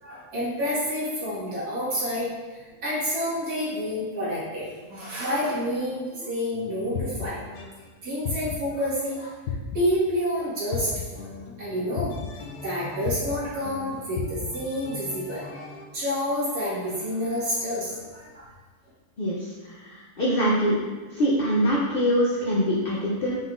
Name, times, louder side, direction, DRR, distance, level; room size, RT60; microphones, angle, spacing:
voice 1, 0.0-7.4 8.0-9.3 9.7-11.2 11.6-12.1 12.5-18.5, equal, 85° right, -10 dB, 2.3 m, -29 dB
sound 1, 6.5-7.8 8.2-8.8 9.5-10.1 10.7-15.9, left 5 dB, 85° left, 1.1 m, -35 dB
voice 2, 20.2-20.8 21.2-23.4, equal, 50° left, -5 dB, 0.7 m, -23 dB
5.4 x 3.5 x 2.5 m, 1.3 s
omnidirectional pair, 1.6 m